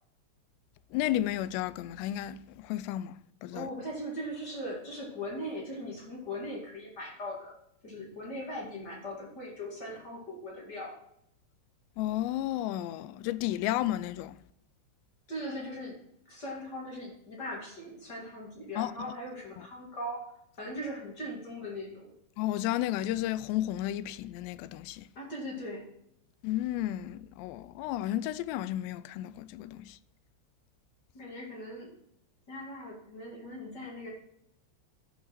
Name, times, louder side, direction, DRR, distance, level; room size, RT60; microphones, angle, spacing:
voice 1, 0.9-3.2 3.4-3.7 12.0-14.4 18.8-18.9 22.4-25.1 26.4-30.0, left 13 dB, 90° left, 2.7 m, -32 dB
voice 2, 3.5-7.5 7.8-11.0 15.3-16.0 16.3-20.3 20.6-22.1 25.2-25.9 31.1-31.9 32.5-34.1, equal, 30° left, 2.2 m, -39 dB
12.5 x 5.6 x 6.0 m
omnidirectional pair, 4.8 m